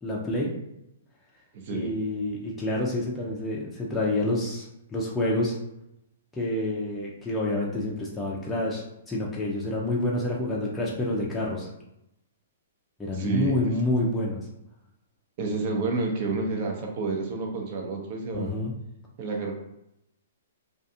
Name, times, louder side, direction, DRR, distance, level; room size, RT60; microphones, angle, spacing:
voice 1, 0.0-0.5 1.7-4.7 4.9-5.6 6.4-11.7 13.0-14.4 18.3-18.7, left 1 dB, 10° left, -5 dB, 0.5 m, -28 dB
voice 2, 1.5-1.9 13.1-13.6 15.4-18.6 19.2-19.5, right 3 dB, 45° right, 1 dB, 0.7 m, -29 dB
2.4 x 2.3 x 2.7 m, 0.84 s
hypercardioid pair, 140°, 0 cm